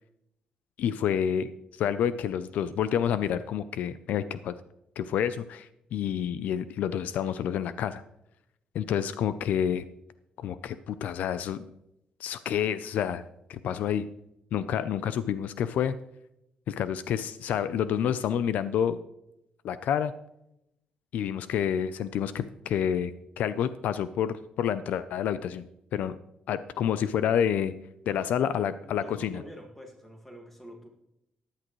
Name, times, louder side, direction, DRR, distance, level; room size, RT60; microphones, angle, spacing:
voice 1, 0.8-4.5 5.0-8.0 8.7-9.9 10.4-11.7 12.2-14.1 14.5-16.0 16.7-19.0 19.6-20.1 21.1-25.6 25.9-26.2 26.5-27.7 28.1-29.4, left 9 dB, 70° left, 14 dB, 0.5 m, -29 dB
voice 2, 28.1-30.9, equal, 10° left, 2 dB, 1.9 m, -47 dB
14.5 x 10.5 x 3.1 m, 0.82 s
cardioid pair, 175°, 3 cm